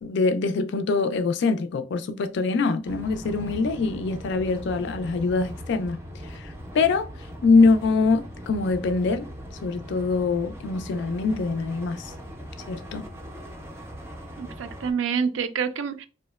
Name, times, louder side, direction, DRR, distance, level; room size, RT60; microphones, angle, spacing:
voice 1, 0.0-6.0 6.3-7.1 7.4-9.2 9.6-12.1 12.7-13.1, left 4 dB, 60° left, 0.3 m, -24 dB
sound 1, 2.8-14.9, equal, 15° right, 0.4 m, -40 dB
voice 2, 14.4-16.1, right 6 dB, 75° right, 0.4 m, -27 dB
2.7 x 2.1 x 2.2 m
head